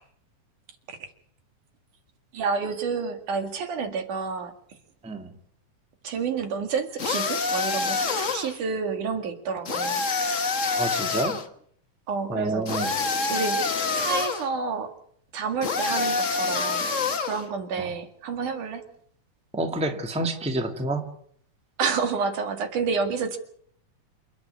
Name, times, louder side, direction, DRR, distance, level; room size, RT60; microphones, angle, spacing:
voice 1, 2.3-4.5 6.0-10.0 12.1-12.8 13.3-13.6 14.0-14.9 15.3-18.8 21.8-23.4, right 5 dB, 70° right, 6 dB, 3.6 m, -29 dB
sound 1, 7.0-8.6 9.6-11.4 12.7-14.5 15.6-17.4, left 4 dB, 60° left, 0.7 m, -26 dB
voice 2, 10.8-11.4 12.3-13.0 17.8-17.9 19.5-21.0, right 2 dB, ahead, 4 dB, 1.8 m, -28 dB
28.0 x 10.5 x 9.6 m, 0.65 s
omnidirectional pair, 3.7 m